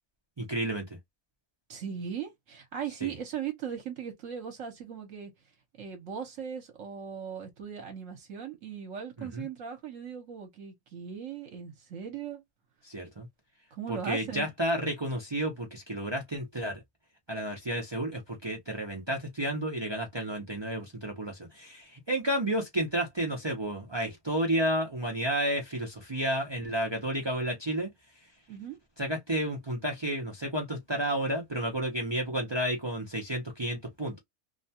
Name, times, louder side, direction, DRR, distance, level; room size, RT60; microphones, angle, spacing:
voice 1, 0.4-0.8 3.0-3.1 9.2-9.5 12.8-13.3 13.9-16.8 17.3-27.9 29.0-34.2, right 1 dB, 45° right, 0.3 m, -31 dB
voice 2, 1.7-5.3 5.7-12.4 13.7-14.5 28.5-28.8, right 8 dB, 65° right, 1.1 m, -38 dB
2.6 x 2.2 x 2.7 m
omnidirectional pair, 1.5 m